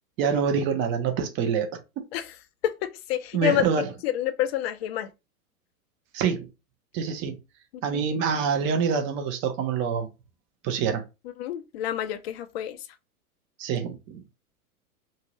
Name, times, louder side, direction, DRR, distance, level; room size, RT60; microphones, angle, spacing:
voice 1, 0.2-1.8 3.3-3.9 6.1-6.5 6.9-7.4 7.8-10.1 10.6-11.0 13.6-14.2, right 6 dB, 25° right, 0.7 m, -26 dB
voice 2, 2.6-3.6 4.0-5.1 11.4-12.8, left 11 dB, 45° left, 0.5 m, -28 dB
2.7 x 2.4 x 3.0 m
hypercardioid pair, 110°, 45 cm